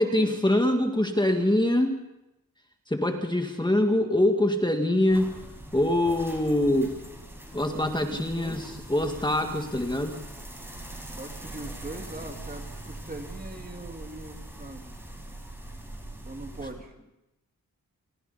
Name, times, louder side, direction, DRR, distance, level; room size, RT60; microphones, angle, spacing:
voice 1, 0.0-2.0 2.9-5.3 5.7-7.0 7.5-10.2, left 1 dB, 15° left, 4 dB, 2.1 m, -24 dB
sound 1, 5.1-16.7, right 1 dB, 5° right, 5.6 m, -42 dB
voice 2, 7.7-8.8 11.2-14.9 16.2-16.9, right 2 dB, 25° right, 4 dB, 2.3 m, -41 dB
29.5 x 23.5 x 4.2 m, 0.93 s
wide cardioid pair, 90°, 34 cm